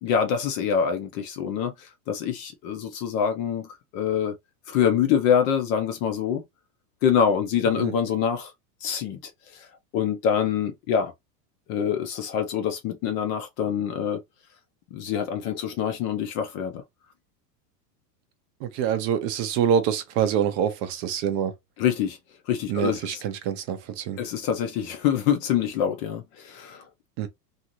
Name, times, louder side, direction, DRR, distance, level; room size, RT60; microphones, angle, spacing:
voice 1, 0.0-4.3 4.7-6.4 7.0-8.5 8.8-9.2 9.5-9.7 9.9-11.1 11.7-14.2 14.9-16.8 21.8-22.2 22.5-23.2 24.2-26.8, left 8 dB, 35° left, 0.4 m, -25 dB
voice 2, 18.6-21.5 22.7-24.2 27.2-27.3, right 8 dB, 40° right, 0.6 m, -25 dB
2.6 x 2.4 x 2.9 m
supercardioid pair, 140°, 48 cm